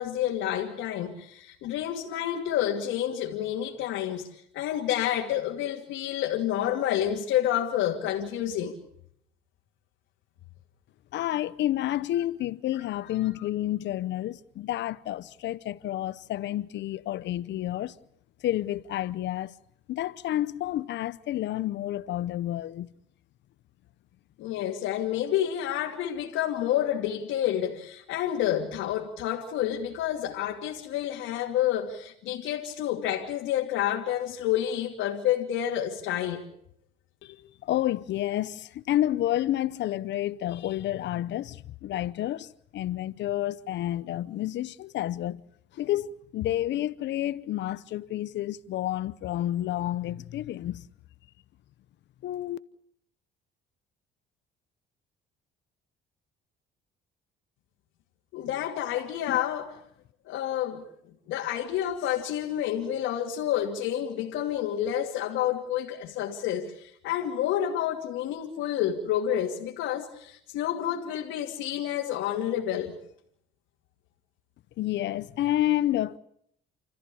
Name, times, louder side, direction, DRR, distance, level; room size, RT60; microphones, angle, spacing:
voice 1, 0.0-8.7 24.4-36.4 58.3-59.7 60.3-60.8 61.3-72.9, left 11 dB, 85° left, 2.7 m, -29 dB
voice 2, 11.1-17.9 18.4-19.5 19.9-22.9 37.2-45.4 45.7-50.9 52.2-52.6 59.3-59.4 74.8-76.2, left 13 dB, 65° left, 0.8 m, -30 dB
29.0 x 14.5 x 8.6 m
cardioid pair, 120°, 20 cm